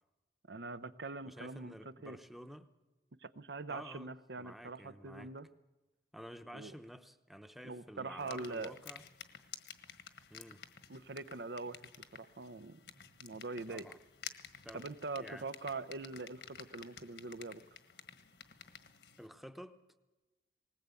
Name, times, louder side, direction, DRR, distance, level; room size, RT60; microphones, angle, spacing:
voice 1, 0.5-2.2 3.2-5.5 6.5-6.7 7.6-8.7 10.9-12.8 13.2-13.9 14.7-17.6, right 3 dB, 70° right, 13 dB, 0.8 m, -43 dB
voice 2, 1.2-2.7 3.7-4.1 4.4-5.3 6.1-9.0 10.3-10.6 13.7-14.0 14.6-14.9 15.2-15.5 19.2-19.8, equal, ahead, 8 dB, 0.8 m, -50 dB
sound 1, 8.2-19.3, left 8 dB, 75° left, 1.5 m, -52 dB
19.5 x 19.5 x 8.4 m, 1.2 s
head